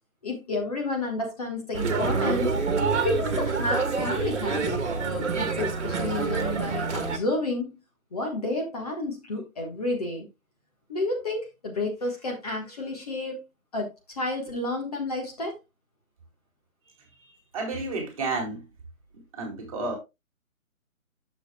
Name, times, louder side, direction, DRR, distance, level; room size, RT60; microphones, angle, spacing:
voice 1, 0.2-2.5 2.9-7.7 8.1-10.3 10.9-13.4 13.7-15.6, left 2 dB, 25° left, 1.4 m, -31 dB
sound 1, 1.7-7.2, right 4 dB, 55° right, 1.5 m, -27 dB
voice 2, 17.2-18.7 19.3-20.0, right 3 dB, 25° right, 2.1 m, -31 dB
10.5 x 6.6 x 2.2 m
figure-of-eight pair, 160°, 42 cm